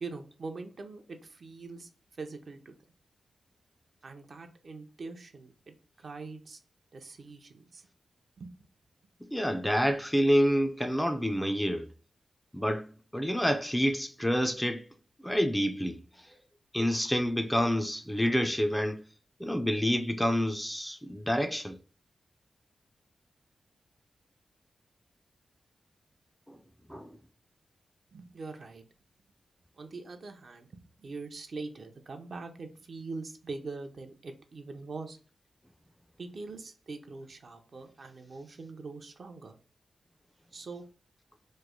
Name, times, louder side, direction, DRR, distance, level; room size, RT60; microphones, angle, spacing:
voice 1, 0.0-1.9 2.2-2.8 4.0-5.7 6.0-6.6 6.9-7.9 8.4-8.5 28.1-28.8 29.8-30.7 31.0-35.2 36.2-39.6 40.5-40.8, right 3 dB, 60° right, 0.6 m, -43 dB
voice 2, 9.3-11.9 12.5-12.9 13.1-14.8 15.2-16.0 16.7-19.0 19.4-21.8 26.5-26.6 26.9-27.1, equal, 5° left, 0.4 m, -28 dB
3.1 x 2.1 x 3.5 m
cardioid pair, 60°, 0 cm